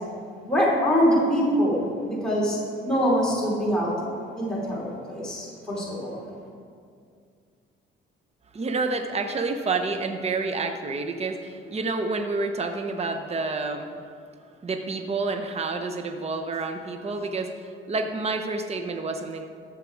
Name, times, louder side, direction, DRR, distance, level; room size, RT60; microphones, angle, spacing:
voice 1, 0.5-2.6 2.9-3.9 4.4-6.2, equal, 5° left, -6 dB, 3.1 m, -24 dB
voice 2, 8.5-13.9 14.6-19.5, right 3 dB, 30° right, 6 dB, 0.9 m, -29 dB
13.0 x 7.5 x 4.7 m, 2.3 s
cardioid pair, 90°, 20 cm